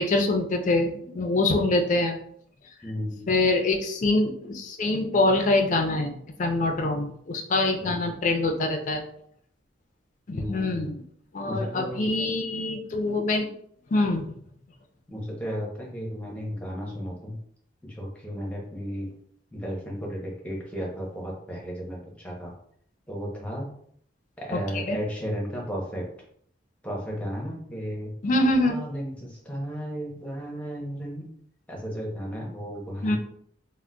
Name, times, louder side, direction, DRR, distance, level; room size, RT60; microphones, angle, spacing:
voice 1, 0.0-2.2 3.3-9.0 10.3-10.9 11.3-13.5 13.9-14.2 24.5-25.0 28.2-28.7 33.0-33.2, left 2 dB, 45° left, 3 dB, 0.4 m, -24 dB
voice 2, 2.8-3.3 7.8-8.0 10.3-10.9 11.5-12.1 15.1-17.4 17.8-19.1 19.5-22.5 23.1-23.7 24.4-26.1 26.8-28.1 28.6-31.3 31.7-33.2, equal, 5° left, -3 dB, 0.7 m, -34 dB
3.7 x 2.1 x 2.2 m, 0.66 s
head